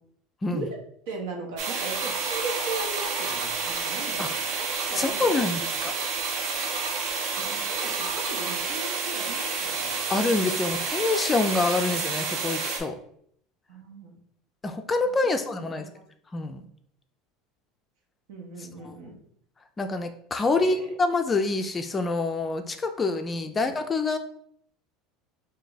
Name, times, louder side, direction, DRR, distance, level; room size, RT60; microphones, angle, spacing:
voice 1, 1.1-5.7 7.4-10.0 13.7-14.2 15.2-16.0 18.3-19.2 20.5-20.8 23.3-23.7, right 3 dB, 90° right, 1 dB, 1.0 m, -39 dB
sound 1, 1.6-12.8, right 4 dB, 60° right, 0.7 m, -29 dB
voice 2, 5.0-5.9 9.7-9.8 10.1-13.0 14.6-15.9 16.3-16.7 18.8-18.9 19.8-24.2, left 3 dB, 15° left, 7 dB, 0.3 m, -26 dB
3.4 x 2.7 x 3.9 m, 0.66 s
cardioid pair, 155°, 0 cm